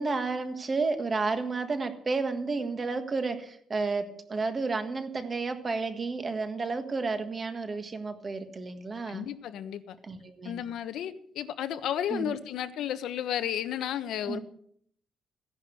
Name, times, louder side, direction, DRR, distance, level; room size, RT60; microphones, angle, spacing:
voice 1, 0.0-9.2 10.0-10.6 12.1-12.3 14.3-14.4, right 4 dB, 25° right, 8 dB, 1.6 m, -31 dB
voice 2, 9.1-10.0 10.4-14.4, left 10 dB, 70° left, 11 dB, 1.2 m, -33 dB
16.0 x 11.0 x 7.9 m, 0.64 s
cardioid pair, 180°, 0 cm